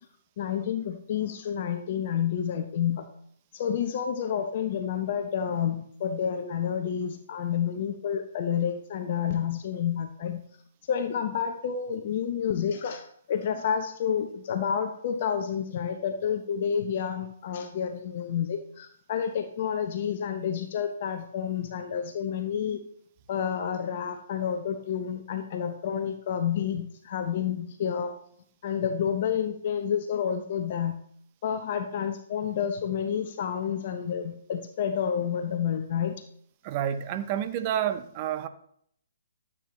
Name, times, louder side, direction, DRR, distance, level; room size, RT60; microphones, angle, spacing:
voice 1, 0.4-3.1 3.5-10.4 10.9-22.8 23.3-28.2 28.6-31.0 31.4-36.2, left 8 dB, 45° left, 0.9 m, -29 dB
voice 2, 36.6-38.5, right 10 dB, 35° right, 0.9 m, -29 dB
13.0 x 8.6 x 3.3 m
figure-of-eight pair, 130°, 0 cm